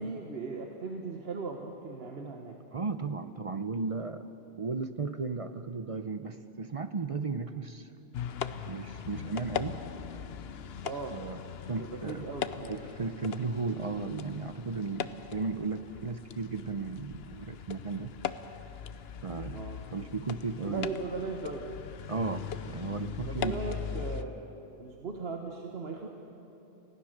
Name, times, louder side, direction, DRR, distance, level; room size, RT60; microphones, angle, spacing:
voice 1, 0.0-2.6 10.8-11.2 11.8-12.8 19.5-19.8 20.6-21.7 23.3-24.3 24.8-26.1, right 4 dB, 70° right, 1 dB, 1.5 m, -38 dB
voice 2, 2.7-4.3 4.6-7.9 8.6-9.8 11.1-11.4 11.7-12.3 12.7-18.1 19.2-19.6 19.9-20.9 22.1-23.6, right 4 dB, 40° right, 9 dB, 0.6 m, -35 dB
sound 1, 8.1-24.2, left 8 dB, 75° left, 0.9 m, -40 dB
29.0 x 16.5 x 6.6 m, 2.9 s
omnidirectional pair, 1.1 m